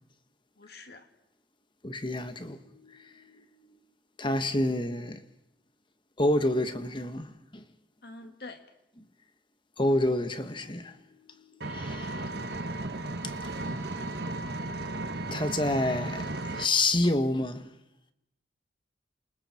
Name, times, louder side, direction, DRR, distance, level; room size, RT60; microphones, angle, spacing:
voice 1, 0.6-1.1 8.0-8.7 10.6-10.7, left 3 dB, 60° left, 2.4 m, -46 dB
voice 2, 1.8-3.5 4.2-5.2 6.2-7.6 9.8-11.0 11.3-12.6 13.2-13.7 14.3-14.5 15.3-17.7, left 1 dB, 25° left, 1.4 m, -29 dB
Engine, 11.6-16.6, right 2 dB, 65° right, 1.7 m, -35 dB
28.5 x 26.0 x 4.4 m
head